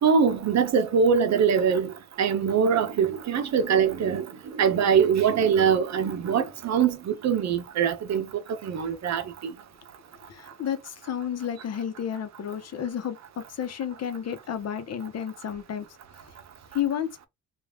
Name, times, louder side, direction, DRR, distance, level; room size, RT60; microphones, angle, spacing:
voice 1, 0.0-4.3 4.5-8.3 8.6-9.5, right 7 dB, 60° right, 0.9 m, -23 dB
voice 2, 10.3-15.9 16.7-17.3, left 9 dB, 55° left, 0.9 m, -31 dB
3.3 x 2.5 x 3.5 m
cardioid pair, 90°, 30 cm